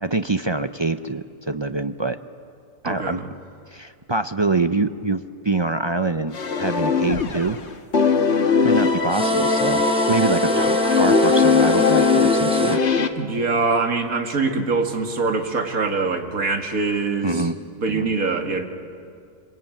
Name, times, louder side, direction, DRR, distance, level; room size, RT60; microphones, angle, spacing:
voice 1, 0.0-2.2 2.8-3.2 3.7-7.6 8.6-12.8 17.2-17.6 17.9-18.1, right 3 dB, 35° right, 10 dB, 0.4 m, -25 dB
voice 2, 2.8-3.3 13.2-17.5 17.8-18.7, right 4 dB, 90° right, 5 dB, 2.4 m, -23 dB
sound 1, 6.3-7.6 7.9-13.1, left 5 dB, 55° left, 1.5 m, -20 dB
sound 2, 9.1-12.8, equal, 5° right, 0.8 m, -24 dB
26.0 x 23.0 x 9.1 m, 2.3 s
omnidirectional pair, 1.4 m